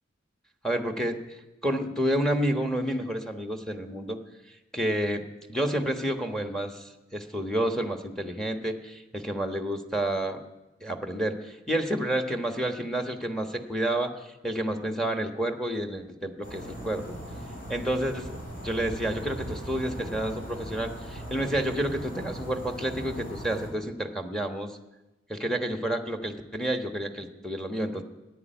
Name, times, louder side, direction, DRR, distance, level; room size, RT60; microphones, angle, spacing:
voice 1, 0.6-1.2 1.6-4.2 4.7-5.2 5.5-6.8 7.1-10.4 10.8-14.1 14.4-17.0 17.7-24.7 25.3-28.0, right 1 dB, 5° left, 5 dB, 1.3 m, -29 dB
sound 1, 16.4-23.7, equal, 45° left, 5.4 m, -39 dB
15.0 x 10.5 x 9.2 m, 1.1 s
head